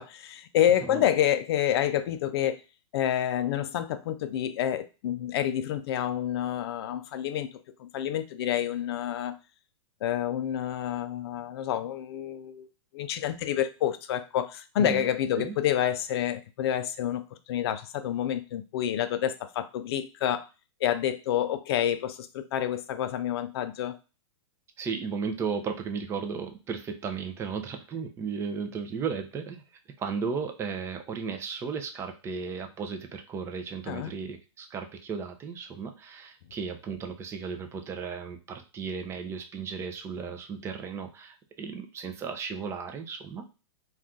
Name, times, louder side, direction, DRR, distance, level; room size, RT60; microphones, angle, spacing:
voice 1, 0.0-2.6 2.9-7.5 7.8-9.4 10.0-12.7 12.9-20.5 20.8-24.0 33.9-34.1, left 10 dB, 60° left, 10 dB, 0.4 m, -28 dB
voice 2, 24.8-29.6 30.0-43.4, right 5 dB, 15° right, 5 dB, 0.4 m, -35 dB
2.6 x 2.4 x 3.5 m, 0.31 s
hypercardioid pair, 135°, 15 cm